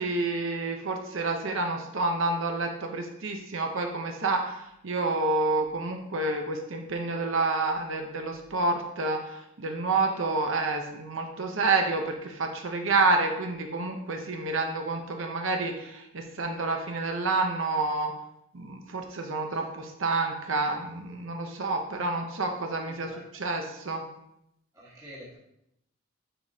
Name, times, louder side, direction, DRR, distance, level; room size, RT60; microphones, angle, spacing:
voice 1, 0.0-18.1 18.5-24.0, right 3 dB, 60° right, 3 dB, 0.8 m, -29 dB
voice 2, 22.8-23.2 24.7-25.4, equal, 15° right, -7 dB, 1.7 m, -47 dB
10.0 x 5.1 x 2.8 m, 0.82 s
head